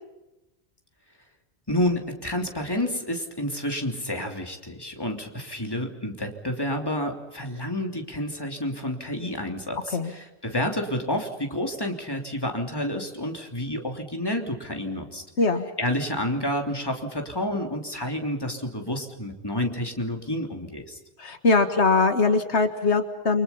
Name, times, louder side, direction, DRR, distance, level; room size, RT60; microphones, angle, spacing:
voice 1, 1.7-15.2 15.8-21.0, left 1 dB, 20° left, 3 dB, 3.2 m, -29 dB
voice 2, 21.2-23.4, left 3 dB, 75° left, 7 dB, 1.8 m, -21 dB
29.0 x 25.0 x 5.7 m, 0.99 s
omnidirectional pair, 1.1 m